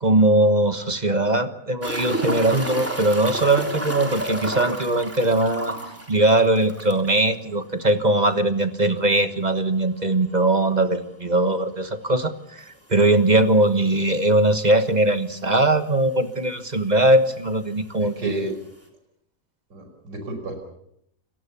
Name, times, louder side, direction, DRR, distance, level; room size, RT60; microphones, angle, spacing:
voice 1, 0.0-5.7 6.1-18.5, right 1 dB, 25° right, 9 dB, 1.3 m, -20 dB
sound 1, 1.8-7.2 7.5-7.6 7.9-8.0 10.8-10.9 12.6-12.7 13.5-13.6 13.8-13.9 14.8-14.9 15.0-15.7 16.6-16.7, right 1 dB, 5° right, 3.5 m, -30 dB
voice 2, 18.0-18.5 19.7-20.7, right 2 dB, 90° right, 4 dB, 6.1 m, -32 dB
30.0 x 18.0 x 7.1 m, 0.76 s
omnidirectional pair, 1.9 m